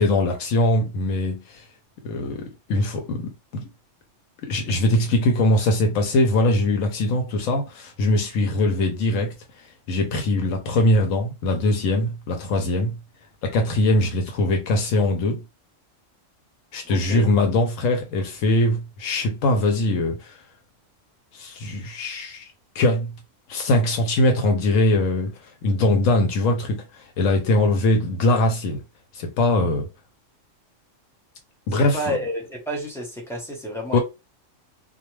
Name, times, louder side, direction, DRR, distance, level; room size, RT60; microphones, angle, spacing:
voice 1, 0.0-1.7 2.0-3.7 4.4-13.0 13.4-15.4 16.7-20.4 21.3-22.5 22.7-23.1 23.5-28.8 29.1-29.9 31.7-32.2 33.9-34.0, left 2 dB, 85° left, 1.0 m, -22 dB
voice 2, 16.8-17.2 31.7-34.0, equal, 5° left, 0.6 m, -30 dB
2.3 x 2.2 x 3.0 m
omnidirectional pair, 1.3 m